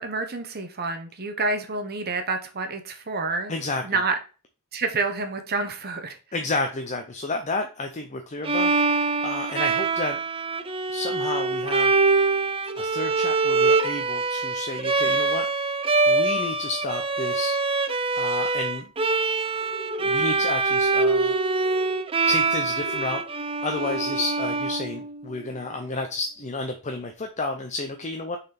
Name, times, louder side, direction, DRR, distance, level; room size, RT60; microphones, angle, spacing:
voice 1, 0.0-3.5 3.8-4.2 4.7-6.2, right 3 dB, 45° right, 6 dB, 0.9 m, -28 dB
voice 2, 3.5-3.8 6.3-10.2 10.9-12.0 12.7-15.5 16.1-17.6 18.1-18.9 20.0-21.4 22.3-23.2 23.6-28.4, left 2 dB, 30° left, 5 dB, 0.7 m, -31 dB
Bowed string instrument, 8.4-25.4, right 3 dB, 25° right, 0.5 m, -24 dB
sound 1, 19.6-20.1 20.8-21.3 21.6-22.1 22.8-23.2 23.7-24.3, left 1 dB, 70° left, 1.1 m, -39 dB
6.4 x 4.2 x 4.2 m, 0.34 s
head